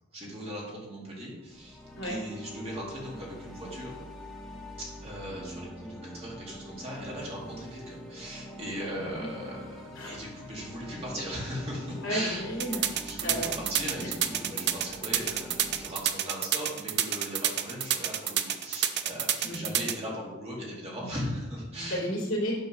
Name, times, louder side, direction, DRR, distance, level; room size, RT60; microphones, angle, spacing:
voice 1, 0.1-4.1 4.8-12.5 13.0-22.0, equal, 30° right, -4 dB, 2.2 m, -38 dB
sound 1, 1.4-15.9, equal, ahead, 1.0 m, -45 dB
voice 2, 12.0-12.8 13.2-13.5 19.4-19.7 21.9-22.5, equal, 65° left, -3 dB, 2.9 m, -32 dB
sound 2, 12.6-19.9, right 10 dB, 55° right, 0.5 m, -28 dB
9.4 x 3.9 x 6.3 m, 1.1 s
head